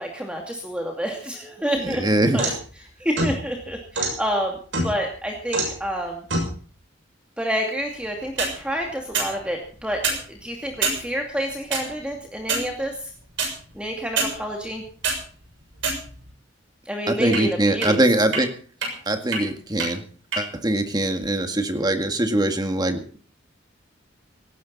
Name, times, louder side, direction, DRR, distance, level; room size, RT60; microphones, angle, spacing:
voice 1, 0.0-2.0 2.3-2.5 3.0-4.6 4.8-6.3 7.4-10.0 10.3-12.9 13.7-14.8 16.9-18.1, equal, 5° right, 1 dB, 2.5 m, -28 dB
sound 1, 1.7-2.7 3.2-4.2 4.7-5.2 5.5-5.8 6.3-6.5 8.2-8.5 9.1-9.3 9.9-10.2 10.8-11.0 11.7-11.8 12.4-12.7 13.4-13.5 14.2-14.3 14.8-15.2 15.8-16.3 17.3-17.4 17.8-17.9 18.3-18.4 18.8-18.9 19.3-19.4 19.8-19.9 20.3-20.4, right 3 dB, 80° right, 6.6 m, -25 dB
voice 2, 1.8-2.6 17.1-18.5 19.1-20.0 20.4-23.2, right 1 dB, 20° right, 7 dB, 1.9 m, -22 dB
18.0 x 17.0 x 4.1 m, 0.42 s
head